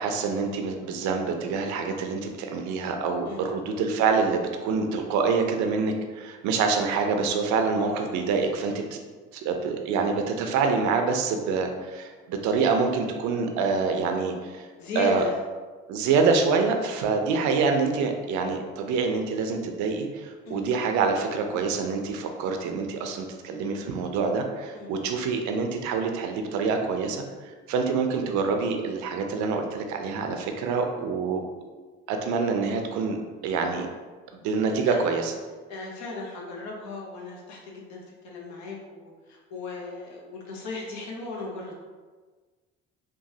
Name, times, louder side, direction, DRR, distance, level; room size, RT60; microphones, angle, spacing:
voice 1, 0.0-9.0 9.3-14.7 15.0-15.2 15.9-31.4 32.1-33.2 33.4-33.9 34.4-35.3, right 4 dB, 80° right, 5 dB, 0.5 m, -26 dB
voice 2, 14.8-15.3 20.4-20.6 24.7-24.9 34.7-35.1 35.7-41.8, left 2 dB, 75° left, -1 dB, 0.7 m, -36 dB
3.0 x 2.2 x 2.7 m, 1.4 s
supercardioid pair, 70°, 29 cm